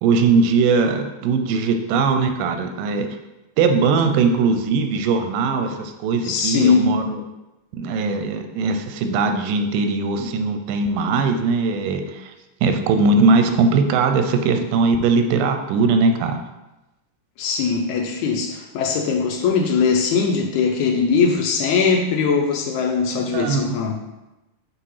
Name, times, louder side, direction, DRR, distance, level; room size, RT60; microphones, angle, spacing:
voice 1, 0.0-3.1 3.6-7.2 7.7-12.3 12.6-16.4 23.1-23.8, right 4 dB, 90° right, 6 dB, 2.3 m, -20 dB
voice 2, 6.2-6.9 17.4-24.0, left 5 dB, 75° left, 1 dB, 1.9 m, -20 dB
7.6 x 2.8 x 4.8 m, 0.99 s
omnidirectional pair, 3.7 m